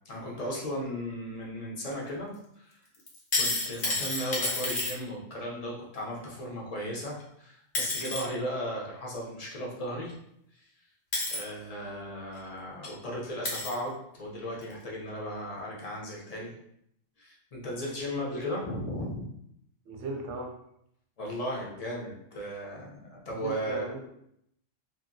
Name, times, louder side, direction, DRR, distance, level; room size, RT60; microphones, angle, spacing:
voice 1, 0.1-2.7 3.3-10.1 10.5-10.6 11.3-16.5 17.2-19.3 21.2-23.8, equal, 40° left, -3 dB, 0.6 m, -36 dB
sound 1, 3.1-4.9 7.2-7.3 7.7-8.2 10.1-10.2 11.1-11.4 12.4-12.5 12.8-12.9 13.4-13.8 14.6-14.7, left 2 dB, 65° left, 1.0 m, -30 dB
voice 2, 19.9-20.5 23.3-24.1, right 2 dB, 75° right, 1 dB, 0.9 m, -36 dB
2.8 x 2.6 x 2.6 m, 0.74 s
omnidirectional pair, 1.3 m